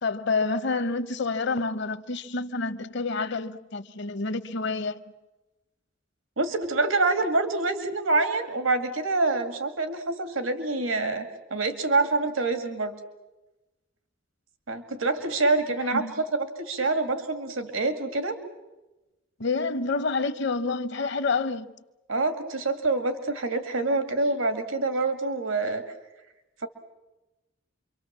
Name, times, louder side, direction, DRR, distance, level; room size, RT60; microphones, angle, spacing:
voice 1, 0.0-5.0 15.9-16.1 19.4-21.7, left 3 dB, 60° left, 0.9 m, -28 dB
voice 2, 6.4-13.0 14.7-16.0 16.3-18.4 22.1-25.8 26.6-26.7, right 3 dB, 85° right, 2.1 m, -26 dB
27.5 x 24.0 x 7.4 m
head